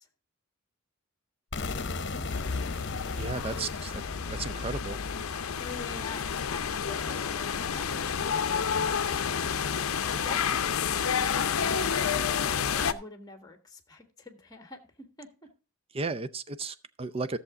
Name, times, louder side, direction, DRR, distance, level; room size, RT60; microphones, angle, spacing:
sound 1, 1.5-7.4, left 3 dB, 55° left, 0.9 m, -38 dB
sound 2, 2.3-12.9, left 7 dB, 75° left, 0.6 m, -30 dB
voice 1, 3.1-4.0 4.3-5.0 15.9-17.4, right 3 dB, 25° right, 0.5 m, -34 dB
sound 3, 3.9-12.5, right 1 dB, 70° right, 4.5 m, -54 dB
voice 2, 5.6-8.7 10.1-12.4 12.7-14.8 15.2-15.3, left 3 dB, 20° left, 1.5 m, -45 dB
13.5 x 7.0 x 3.8 m
head